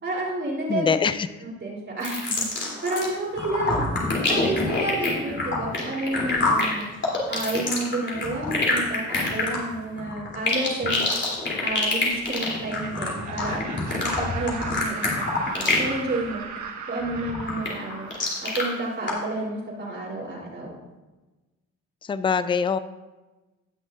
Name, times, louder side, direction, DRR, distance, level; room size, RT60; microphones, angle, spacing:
voice 1, 0.0-0.9 1.4-3.9 4.3-6.9 7.3-11.0 11.6-16.4 16.9-18.1 18.4-20.8, right 2 dB, 40° right, -5 dB, 3.3 m, -30 dB
voice 2, 0.7-1.3 22.0-22.8, left 6 dB, 15° left, 13 dB, 0.4 m, -23 dB
sound 1, 2.0-3.1 3.4-15.9 16.2-16.6 17.0-18.6 19.1-19.2, left 3 dB, 40° left, 3.1 m, -25 dB
Laughter, 12.6-19.4, right 6 dB, 75° right, 1.4 m, -38 dB
18.0 x 6.3 x 2.5 m, 1.1 s
cardioid pair, 90°, 30 cm